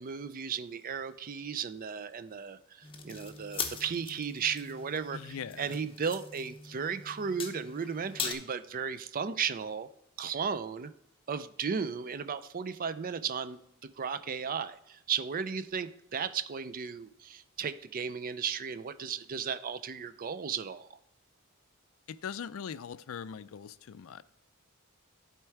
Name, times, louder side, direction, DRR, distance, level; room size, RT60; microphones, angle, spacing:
voice 1, 0.0-9.9 10.2-10.9 11.3-21.0, right 6 dB, 40° right, 0.4 m, -35 dB
sound 1, 2.8-8.3, left 5 dB, 25° left, 0.8 m, -41 dB
voice 2, 5.1-5.8 22.1-24.2, left 7 dB, 65° left, 0.4 m, -41 dB
11.0 x 4.5 x 4.6 m
head